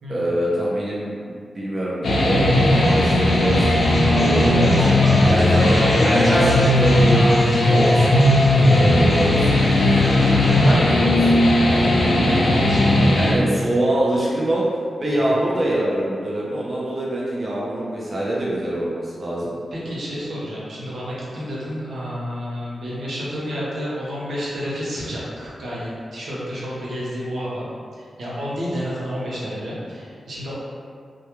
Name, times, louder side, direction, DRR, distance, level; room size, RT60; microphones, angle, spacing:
voice 1, 0.1-7.2 7.6-8.1 8.5-9.6 10.5-11.3 11.7-12.6 13.1-14.6 15.0-19.5, right 1 dB, 35° right, -6 dB, 0.5 m, -25 dB
sound 1, 2.0-13.3, left 1 dB, 85° left, 0.4 m, -17 dB
sound 2, 2.5-10.7, equal, 5° right, 0.8 m, -29 dB
voice 2, 10.1-10.5 12.7-13.4 15.2-15.4 19.7-27.7 27.9-30.6, equal, 75° right, -7 dB, 0.7 m, -30 dB
2.2 x 2.1 x 2.9 m, 2.2 s
wide cardioid pair, 90°, 0 cm